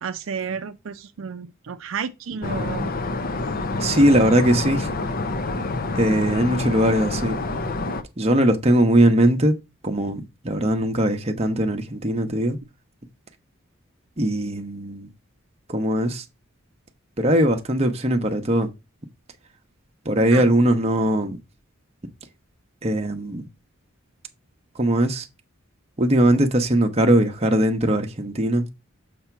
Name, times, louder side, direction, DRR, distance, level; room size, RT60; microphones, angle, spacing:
voice 1, 0.0-2.9 20.3-20.5, right 6 dB, 70° right, 0.5 m, -32 dB
sound 1, 2.4-8.0, left 2 dB, 45° left, 0.6 m, -27 dB
voice 2, 3.8-4.9 5.9-7.3 8.2-9.6 9.8-12.6 14.2-15.1 15.7-16.2 17.2-18.7 20.0-21.4 22.8-23.5 24.8-25.3 26.0-28.7, right 1 dB, 30° right, 0.8 m, -20 dB
6.7 x 2.8 x 5.7 m
head